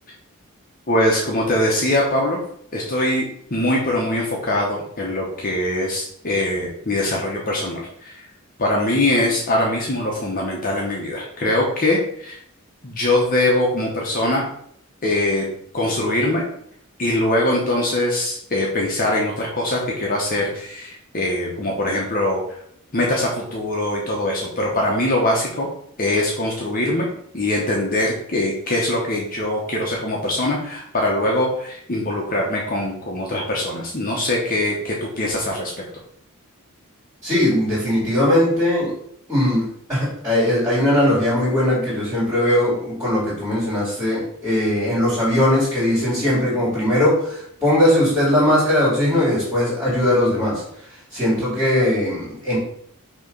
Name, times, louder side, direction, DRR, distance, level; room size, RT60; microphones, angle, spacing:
voice 1, 0.9-2.4 2.7-8.2 8.6-12.4 12.8-14.4 15.0-15.5 15.7-16.4 17.0-22.4 22.9-25.7 26.0-27.1 27.3-35.7, left 1 dB, 40° left, -2 dB, 1.0 m, -22 dB
voice 2, 37.2-38.9 39.3-50.6 51.1-52.6, left 1 dB, 15° right, -11 dB, 2.7 m, -19 dB
6.1 x 3.0 x 5.3 m, 0.68 s
head